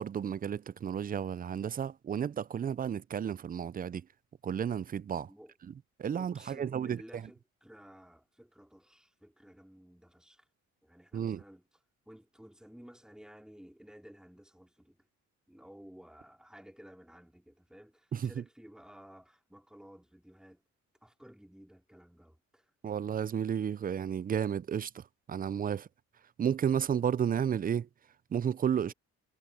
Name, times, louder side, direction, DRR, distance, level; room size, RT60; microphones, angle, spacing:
voice 1, 0.0-4.1 4.4-5.3 6.0-7.2 11.1-11.4 18.1-18.3 22.8-25.0 25.3-25.9 26.4-27.9 28.3-28.9, right 8 dB, 30° right, 0.4 m, -32 dB
voice 2, 6.2-10.5 10.8-11.7 12.1-15.0 15.5-20.6 21.0-22.7 28.9-29.0, equal, ahead, 2.9 m, -55 dB
cardioid pair, 90°, 30 cm